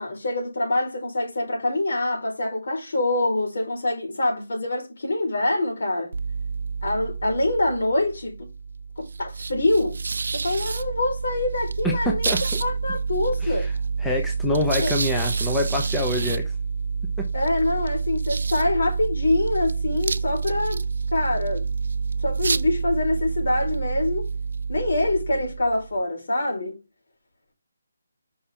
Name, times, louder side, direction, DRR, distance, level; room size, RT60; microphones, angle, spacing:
voice 1, 0.0-6.2 6.8-8.5 9.0-10.0 10.3-12.3 12.6-13.7 14.8-14.9 17.3-20.8 21.1-21.7 22.2-24.3 24.7-26.8, left 2 dB, 65° left, 4.2 m, -25 dB
sound 1, 6.1-26.0, right 5 dB, 60° right, 0.4 m, -28 dB
voice 2, 11.8-12.4 13.4-13.7 14.0-16.4, left 1 dB, 5° left, 0.7 m, -26 dB
5.5 x 4.3 x 4.4 m
hypercardioid pair, 170°, 0 cm